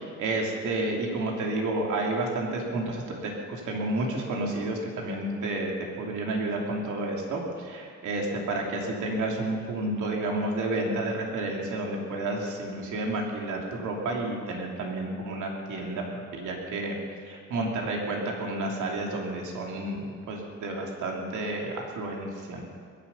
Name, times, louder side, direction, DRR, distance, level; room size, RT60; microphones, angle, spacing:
voice 1, 0.0-5.7 6.0-16.0 16.3-17.0 17.3-22.6, right 2 dB, 80° right, 0 dB, 3.1 m, -30 dB
22.0 x 11.0 x 5.6 m, 2.1 s
cardioid pair, 90°, 30 cm